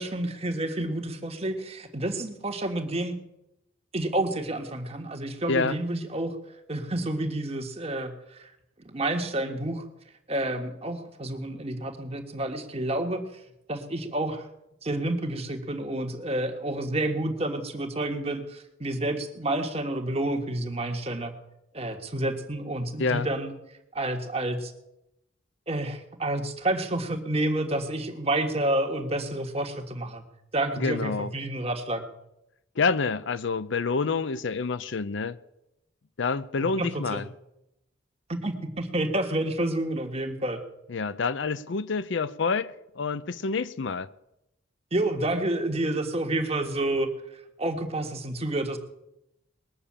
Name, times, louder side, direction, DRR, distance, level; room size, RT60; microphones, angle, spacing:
voice 1, 0.0-3.2 3.9-6.4 6.7-8.5 8.8-9.9 10.3-13.4 13.7-14.5 14.8-21.3 21.7-23.5 23.9-24.7 25.7-30.2 30.5-32.0 36.8-37.2 38.3-40.6 44.9-47.1 47.6-48.8, right 1 dB, 30° right, 1.5 m, -29 dB
voice 2, 30.8-31.3 32.8-35.4 36.2-37.2 40.9-44.1, left 4 dB, 60° left, 0.5 m, -28 dB
20.5 x 6.9 x 8.6 m
head